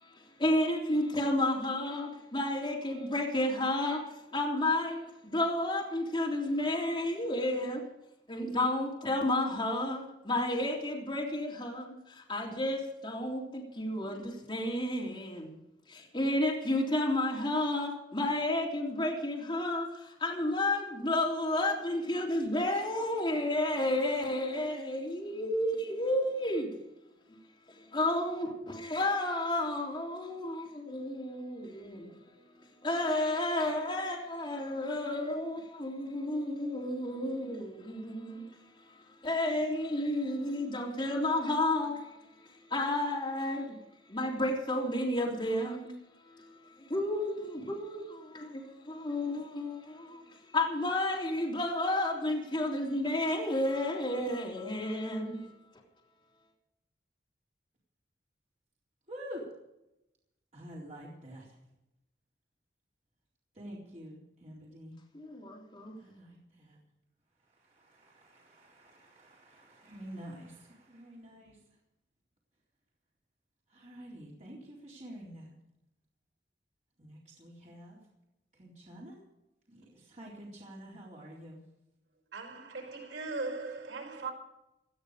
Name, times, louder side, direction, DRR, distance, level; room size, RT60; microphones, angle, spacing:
voice 1, 0.0-7.8 8.3-15.6 15.9-26.7 27.3-27.4 27.7-32.2 32.8-38.4 39.2-42.1 42.7-43.8 44.1-45.9 46.3-50.2 50.5-55.5 65.1-66.0, left 1 dB, 25° left, 3.6 m, -31 dB
voice 2, 59.1-59.4 60.5-61.6 63.5-64.9 66.0-66.8 67.4-71.6 73.7-75.5 77.0-78.0 78.5-79.2 79.7-81.6, equal, 40° right, 4.1 m, -48 dB
voice 3, 82.3-84.3, right 3 dB, 80° right, 5.2 m, -38 dB
19.0 x 13.5 x 5.1 m
head